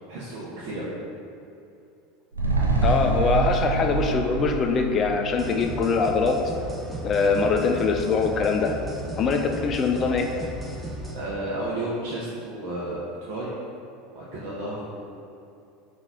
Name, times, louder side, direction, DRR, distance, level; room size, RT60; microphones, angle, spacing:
voice 1, 0.1-0.9 7.2-7.7 11.1-13.5 14.1-15.1, right 1 dB, 60° right, -7 dB, 0.7 m, -32 dB
sound 1, 2.3-6.9 7.2-7.3, right 3 dB, 90° right, 0.4 m, -26 dB
voice 2, 2.8-6.4 7.0-8.8 9.2-10.3, left 5 dB, 35° left, 4 dB, 0.3 m, -23 dB
sound 2, 5.3-11.1, right 1 dB, 15° right, 0.6 m, -35 dB
3.9 x 2.5 x 3.6 m, 2.6 s
hypercardioid pair, 80°, 0 cm